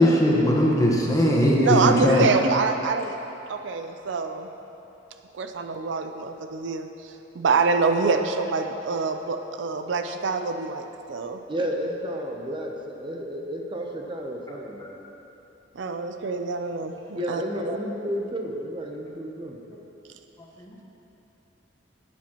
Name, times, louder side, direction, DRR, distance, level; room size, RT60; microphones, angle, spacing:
voice 1, 0.0-2.3 14.5-14.9 20.6-20.7, left 1 dB, 20° left, -3 dB, 1.2 m, -20 dB
voice 2, 1.6-3.2 3.5-4.5 5.3-11.4 15.7-17.8, right 4 dB, 80° right, 7 dB, 0.5 m, -26 dB
voice 3, 11.5-14.9 17.2-19.6, equal, 25° right, 1 dB, 0.7 m, -31 dB
12.0 x 8.6 x 3.0 m, 3.0 s
head